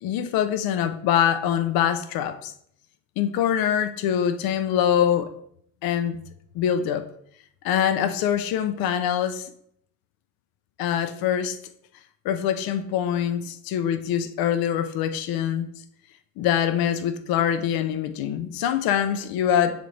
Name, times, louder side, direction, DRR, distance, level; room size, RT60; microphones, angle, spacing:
voice 1, 0.0-2.5 3.2-5.3 5.8-6.2 6.5-7.1 7.6-9.5 10.8-11.6 12.2-15.7 16.4-19.9, left 9 dB, 85° left, 0.7 m, -24 dB
7.8 x 4.1 x 3.3 m
cardioid pair, 130°, 35 cm